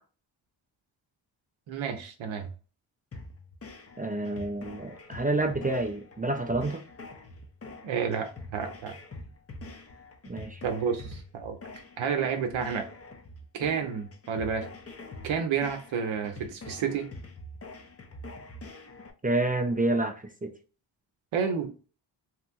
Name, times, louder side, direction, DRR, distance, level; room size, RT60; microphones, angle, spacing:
voice 1, 1.7-2.5 7.8-9.0 10.6-11.6 12.0-12.9 13.5-14.7 15.2-17.1 21.3-21.9, right 6 dB, 80° right, 0.6 m, -30 dB
sound 1, 3.1-19.1, left 2 dB, 30° left, 0.5 m, -45 dB
voice 2, 4.0-6.8 10.3-10.6 19.2-20.5, right 2 dB, 20° right, 0.4 m, -28 dB
2.8 x 2.6 x 2.4 m
cardioid pair, 65°, 46 cm